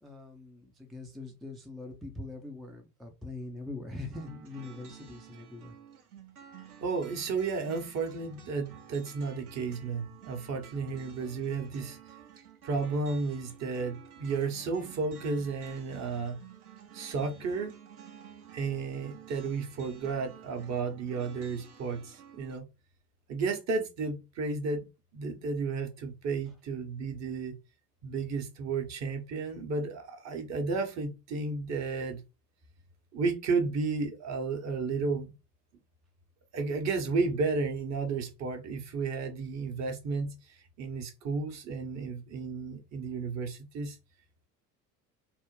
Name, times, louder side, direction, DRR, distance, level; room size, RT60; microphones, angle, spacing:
voice 1, 0.0-5.7 26.5-26.6, left 2 dB, ahead, 0.4 m, -42 dB
sound 1, 4.1-22.6, right 9 dB, 80° right, 0.8 m, -52 dB
voice 2, 6.8-12.0 12.6-16.4 16.9-17.7 18.5-22.7 23.3-27.6 28.0-32.2 33.1-35.3 36.5-44.0, right 4 dB, 40° right, 1.0 m, -33 dB
3.4 x 2.1 x 3.1 m
figure-of-eight pair, 65°, 44 cm